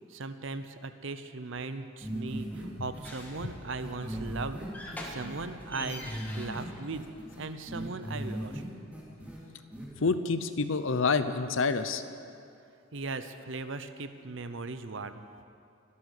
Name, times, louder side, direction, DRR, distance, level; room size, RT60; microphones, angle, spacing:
voice 1, 0.1-4.7 5.0-7.1 7.4-8.6 12.9-15.2, right 3 dB, 60° right, 10 dB, 0.7 m, -38 dB
sound 1, 2.0-2.6 2.9-3.0 3.3-3.4 3.8-5.4 5.8-6.6 6.9-8.6 8.9-9.4 9.7-9.8, equal, 5° right, 2.8 m, -38 dB
sound 2, 2.4-7.5, equal, 10° left, 1.7 m, -45 dB
voice 2, 10.0-12.0, left 4 dB, 65° left, 11 dB, 0.7 m, -27 dB
24.5 x 8.5 x 6.6 m, 2.5 s
head